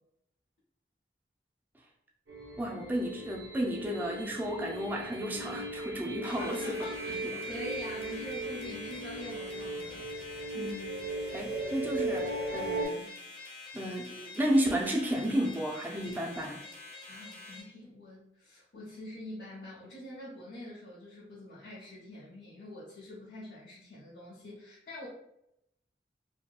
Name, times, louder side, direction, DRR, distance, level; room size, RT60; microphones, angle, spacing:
sound 1, 2.3-12.8, right 2 dB, 85° right, 0.7 m, -37 dB
voice 1, 2.6-6.8 7.2-7.3 10.5-10.9 11.3-13.1 13.7-16.6, equal, 10° right, -1 dB, 0.4 m, -32 dB
sound 2, 6.2-17.6, left 3 dB, 30° left, 0.8 m, -47 dB
voice 2, 6.4-10.1 17.1-25.1, left 1 dB, 60° left, -7 dB, 0.8 m, -45 dB
2.8 x 2.7 x 2.3 m, 0.80 s
head